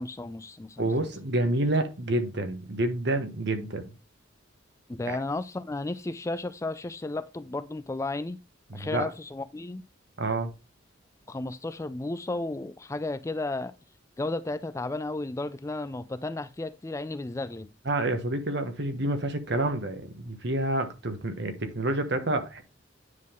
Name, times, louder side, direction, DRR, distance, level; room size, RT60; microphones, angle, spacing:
voice 1, 0.0-1.1 4.9-8.4 8.7-9.8 11.3-13.7 14.2-17.7, left 2 dB, 15° left, 0.3 m, -33 dB
voice 2, 0.8-3.9 5.1-5.2 8.7-9.0 10.2-10.5 17.8-22.6, right 2 dB, 60° right, 1.3 m, -28 dB
9.5 x 3.8 x 3.7 m
head